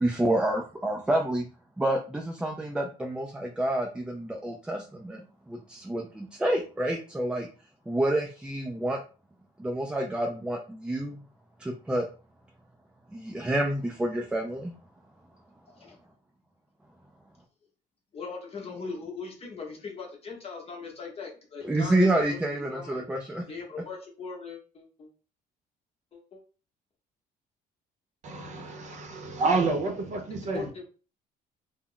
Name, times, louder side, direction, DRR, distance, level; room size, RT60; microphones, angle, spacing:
voice 1, 0.0-1.4 1.8-5.2 5.5-7.5 7.9-9.0 9.6-11.2 11.6-12.1 13.1-14.7 21.6-23.4, right 1 dB, 5° right, 0.3 m, -28 dB
voice 2, 18.1-23.0 23.5-25.1 26.1-26.4 30.5-30.8, left 4 dB, 35° left, 0.9 m, -40 dB
voice 3, 28.2-30.7, right 3 dB, 45° right, 0.7 m, -29 dB
2.3 x 2.0 x 3.7 m
cardioid pair, 110°, 17 cm